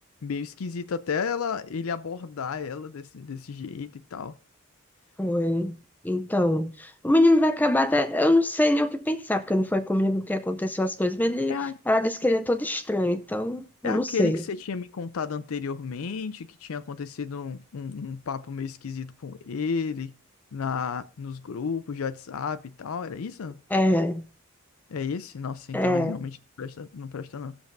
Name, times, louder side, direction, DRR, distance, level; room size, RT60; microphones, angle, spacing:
voice 1, 0.2-4.3 11.5-11.8 13.8-20.1 20.5-23.6 24.9-27.6, left 5 dB, 75° left, 0.5 m, -33 dB
voice 2, 5.2-5.8 6.0-11.5 11.9-14.4 23.7-24.2 25.7-26.2, left 1 dB, 10° left, 0.5 m, -23 dB
17.0 x 7.1 x 2.6 m
head